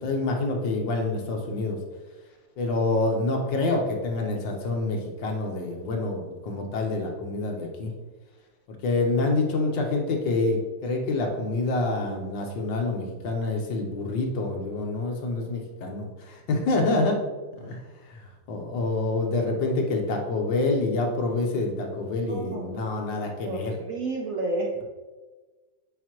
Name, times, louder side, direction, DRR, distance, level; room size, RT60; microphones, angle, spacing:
voice 1, 0.0-1.8 2.6-7.9 8.8-17.2 17.6-17.8 18.1-23.8, left 2 dB, 75° left, 2 dB, 1.7 m, -27 dB
voice 2, 22.3-22.8 23.4-24.7, right 2 dB, 65° right, 0 dB, 0.8 m, -31 dB
7.7 x 4.8 x 3.0 m, 1.3 s
omnidirectional pair, 2.1 m